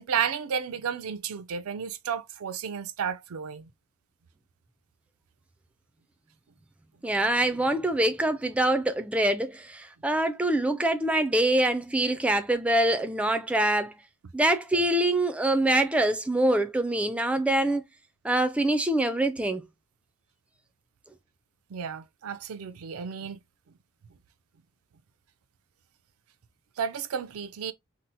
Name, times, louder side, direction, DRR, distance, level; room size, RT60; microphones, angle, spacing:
voice 1, 0.0-3.7 21.7-23.4 26.8-27.7, right 7 dB, 85° right, 0.4 m, -32 dB
voice 2, 7.0-13.9 14.3-17.8 18.2-19.6, right 1 dB, 5° right, 0.3 m, -24 dB
2.8 x 2.0 x 3.8 m
head